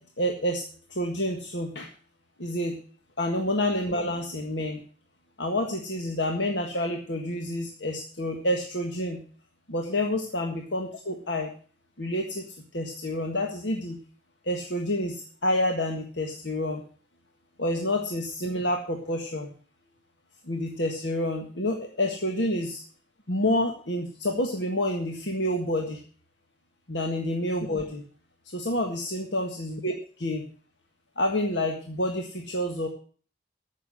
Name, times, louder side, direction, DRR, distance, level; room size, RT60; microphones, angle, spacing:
voice 1, 0.2-0.6 0.9-1.9 2.4-2.8 3.2-4.8 5.4-9.2 9.7-11.5 12.0-12.4 12.7-14.0 14.4-16.8 17.6-19.5 20.5-22.8 23.3-26.0 26.9-28.0 28.5-29.9 30.2-30.4 31.2-32.9, left 1 dB, 75° left, 2 dB, 1.7 m, -28 dB
14.0 x 6.6 x 6.4 m, 0.42 s
head